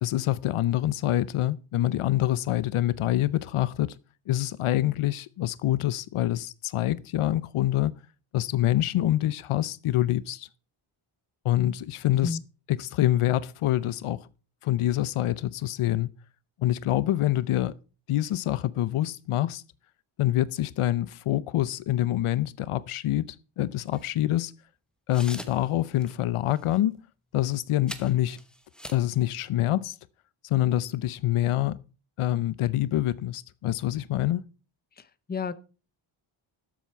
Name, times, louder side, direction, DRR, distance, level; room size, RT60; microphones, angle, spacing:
voice 1, 0.0-4.0 4.3-7.9 8.3-10.5 11.4-12.4 12.7-14.3 14.6-16.1 16.6-17.7 18.1-19.6 20.2-24.5 25.1-27.0 27.3-28.4 28.9-30.0 30.4-31.8 32.2-34.4, left 14 dB, 90° left, 0.7 m, -26 dB
voice 2, 12.1-12.4 35.0-35.5, left 5 dB, 20° left, 0.6 m, -32 dB
sound 1, 23.9-24.1 25.1-25.7 26.0-26.1 26.5-26.8 27.9-29.1, equal, ahead, 1.0 m, -42 dB
13.0 x 7.3 x 4.5 m
wide cardioid pair, 155°, 49 cm